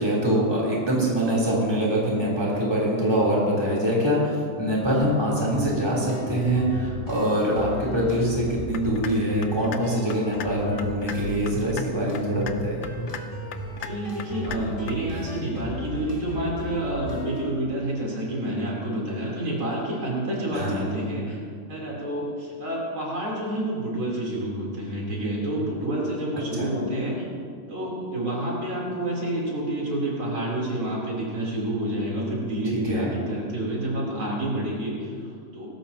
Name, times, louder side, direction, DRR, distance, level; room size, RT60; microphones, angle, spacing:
voice 1, 0.0-12.9 20.5-20.8 26.6-26.7 32.8-33.1, equal, 10° right, -5 dB, 3.3 m, -24 dB
sound 1, 5.5-17.5, equal, 20° left, 1.7 m, -35 dB
sound 2, 8.7-9.1 9.4-9.8 10.1-10.5 10.8-11.2 11.5-11.8 12.1-12.6 12.8-13.2 13.5-13.9 14.2-14.6 14.9-15.0, left 10 dB, 70° left, 1.4 m, -35 dB
voice 2, 13.9-21.4 21.7-27.3 27.7-35.7, right 1 dB, 75° right, -4 dB, 4.2 m, -29 dB
18.5 x 16.0 x 2.9 m, 2.2 s
omnidirectional pair, 2.2 m